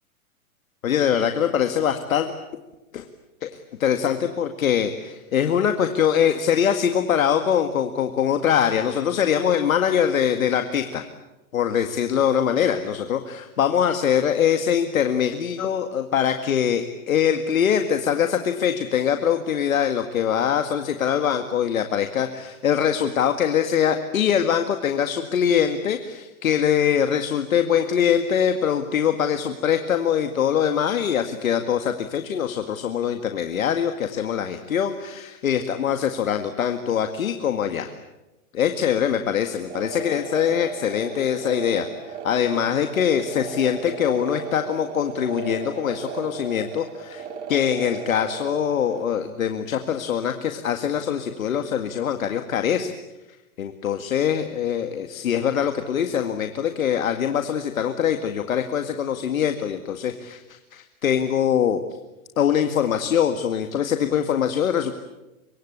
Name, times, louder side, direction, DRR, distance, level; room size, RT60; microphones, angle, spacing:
voice 1, 0.8-2.3 2.9-3.1 3.4-3.5 3.8-11.0 11.5-37.9 38.6-52.9 53.6-61.8 62.4-64.9, left 8 dB, 70° left, 7 dB, 2.0 m, -23 dB
sound 1, 39.7-49.0, right 5 dB, 55° right, 4.2 m, -36 dB
26.0 x 24.5 x 8.7 m, 1.0 s
hypercardioid pair, 180°, 42 cm